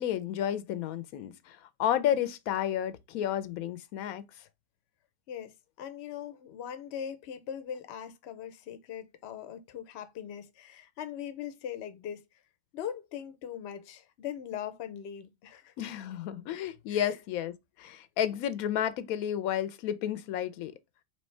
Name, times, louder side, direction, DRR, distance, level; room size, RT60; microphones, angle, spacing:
voice 1, 0.0-4.2 15.8-20.7, left 10 dB, 90° left, 1.0 m, -31 dB
voice 2, 5.3-12.2 12.7-15.7 16.9-17.2, left 9 dB, 60° left, 0.8 m, -40 dB
4.2 x 3.1 x 3.2 m
omnidirectional pair, 1.4 m